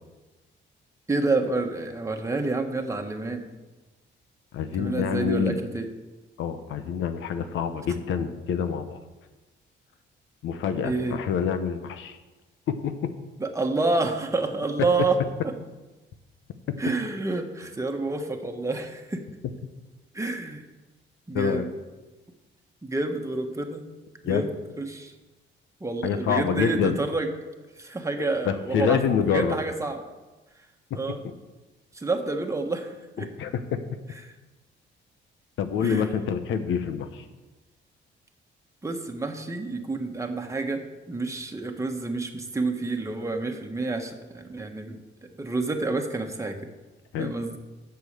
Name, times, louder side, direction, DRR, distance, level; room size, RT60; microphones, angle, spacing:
voice 1, 1.1-3.4 4.8-5.9 10.8-11.2 13.4-15.5 16.8-19.2 20.1-20.6 21.3-21.7 22.8-23.8 24.2-25.1 25.8-27.3 27.8-29.0 29.3-30.0 30.9-31.2 31.9-33.3 34.2-34.3 35.8-36.1 38.8-46.6 47.2-47.6, right 3 dB, 15° right, 3 dB, 1.3 m, -29 dB
voice 2, 4.5-5.6 6.4-9.0 10.4-12.2 12.7-12.9 21.3-21.6 24.2-24.4 26.0-27.0 28.2-29.6 33.2-33.8 35.6-37.2 47.1-47.3, left 7 dB, 80° left, 9 dB, 0.9 m, -27 dB
8.1 x 7.0 x 6.8 m, 1.2 s
cardioid pair, 90°, 20 cm